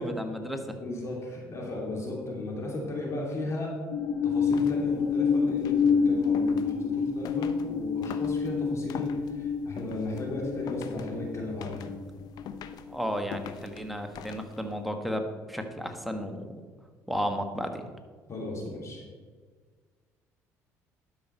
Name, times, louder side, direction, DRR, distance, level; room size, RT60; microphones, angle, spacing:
voice 1, 0.0-0.8 12.9-16.5 17.1-17.9, equal, ahead, 4 dB, 1.4 m, -33 dB
voice 2, 0.8-3.7 4.2-11.9 18.3-19.0, left 2 dB, 40° left, -1 dB, 2.6 m, -35 dB
sound 1, 3.9-13.0, left 6 dB, 85° left, 1.4 m, -28 dB
sound 2, 4.3-14.8, left 8 dB, 65° left, 0.6 m, -46 dB
12.0 x 5.7 x 4.4 m, 1.5 s
supercardioid pair, 70°, 7 cm